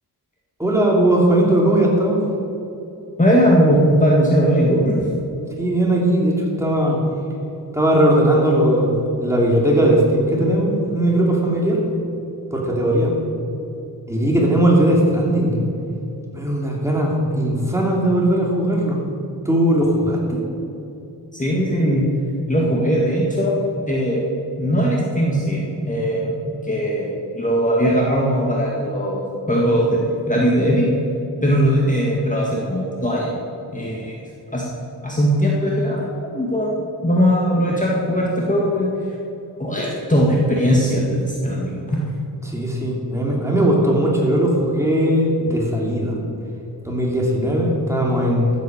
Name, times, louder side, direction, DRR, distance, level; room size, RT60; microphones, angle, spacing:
voice 1, 0.6-2.2 5.6-7.0 7.7-8.9 9.2-11.8 12.5-13.1 14.1-15.6 16.3-19.0 19.4-20.4 42.4-46.2 46.8-48.5, right 1 dB, 5° right, -2 dB, 2.8 m, -18 dB
voice 2, 3.2-5.1 21.3-22.0 22.5-23.5 23.9-24.2 24.6-29.2 29.5-30.0 30.3-30.9 31.4-33.3 33.7-34.1 34.5-34.7 35.0-36.1 36.3-38.9 39.6-42.0, equal, 20° left, -4 dB, 1.9 m, -19 dB
14.5 x 8.1 x 6.6 m, 2.9 s
wide cardioid pair, 110°, 41 cm